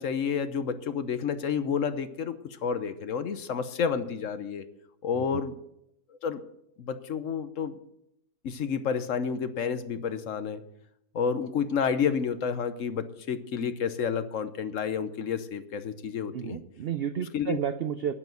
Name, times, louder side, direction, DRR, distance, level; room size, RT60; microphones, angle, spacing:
voice 1, 0.0-4.7 5.0-5.5 6.2-6.4 6.8-7.8 8.4-10.6 11.1-16.6 17.3-17.6, left 6 dB, 60° left, 11 dB, 1.1 m, -30 dB
voice 2, 16.3-18.1, right 9 dB, 80° right, 12 dB, 0.5 m, -31 dB
9.8 x 9.4 x 7.8 m, 0.78 s
omnidirectional pair, 1.6 m